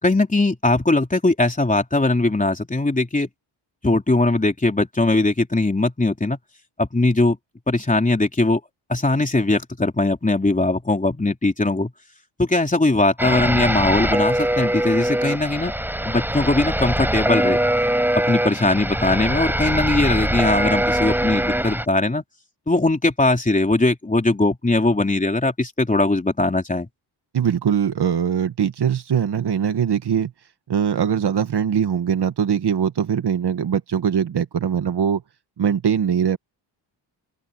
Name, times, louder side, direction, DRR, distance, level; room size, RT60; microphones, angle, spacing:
voice 1, 0.0-3.3 3.8-6.4 6.8-7.4 7.7-8.6 8.9-11.9 12.4-15.7 16.0-17.6 18.3-22.2 22.7-26.9, left 2 dB, 15° left, 3.5 m, -20 dB
sound 1, 13.2-21.9, right 1 dB, 5° right, 5.6 m, -22 dB
voice 2, 27.3-30.3 30.7-35.2 35.6-36.4, right 8 dB, 55° right, 1.7 m, -21 dB
open air
cardioid pair, 90°, 48 cm